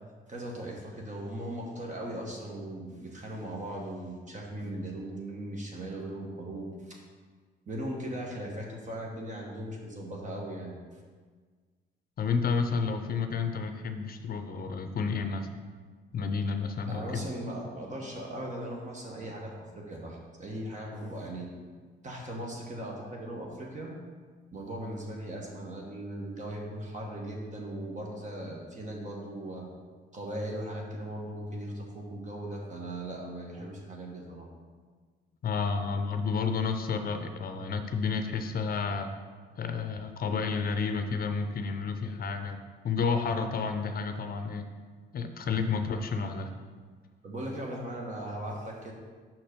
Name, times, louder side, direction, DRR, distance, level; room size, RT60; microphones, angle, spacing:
voice 1, 0.3-7.0 7.7-10.8 16.9-21.5 22.0-23.9 24.5-29.7 30.1-34.5 47.2-48.9, right 1 dB, 40° right, -1 dB, 1.2 m, -38 dB
voice 2, 12.2-15.5 16.1-17.2 35.4-39.1 39.6-42.6 42.8-44.6 45.1-46.5, left 5 dB, 50° left, 7 dB, 0.6 m, -30 dB
5.8 x 4.3 x 5.1 m, 1.5 s
cardioid pair, 90°, 20 cm